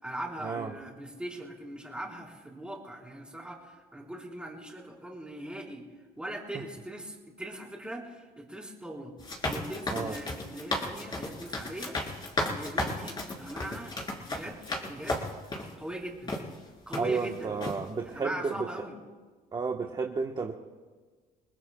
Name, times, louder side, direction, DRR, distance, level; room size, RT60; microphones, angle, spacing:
voice 1, 0.0-5.9 6.2-9.1 9.5-12.0 12.5-14.0 14.3-15.3 15.8-16.4 16.9-17.6 18.0-18.9, right 1 dB, 5° right, -2 dB, 4.3 m, -40 dB
sound 1, 9.2-15.7 16.3-16.4 16.9-17.3 17.6-17.8, left 2 dB, 25° left, 3.8 m, -34 dB
voice 2, 17.0-18.7 19.5-20.5, right 4 dB, 25° right, 2 dB, 1.2 m, -31 dB
30.0 x 20.0 x 2.3 m, 1.4 s
cardioid pair, 110°, 17 cm